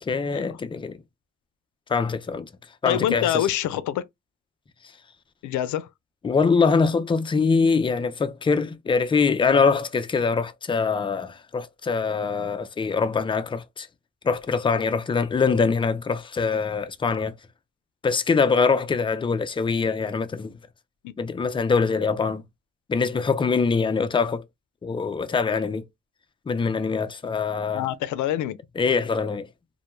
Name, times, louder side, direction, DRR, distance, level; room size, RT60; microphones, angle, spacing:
voice 1, 0.0-1.0 1.9-2.5 2.8-3.5 6.2-13.9 14.2-17.3 18.0-20.5 21.2-22.4 22.9-24.4 24.8-25.9 26.5-27.9 28.8-29.5, left 5 dB, 15° left, 0.3 m, -23 dB
voice 2, 2.8-4.1 5.4-5.9 21.0-21.1 27.7-28.6, left 11 dB, 75° left, 0.5 m, -25 dB
2.2 x 2.1 x 3.0 m
cardioid pair, 90°, 30 cm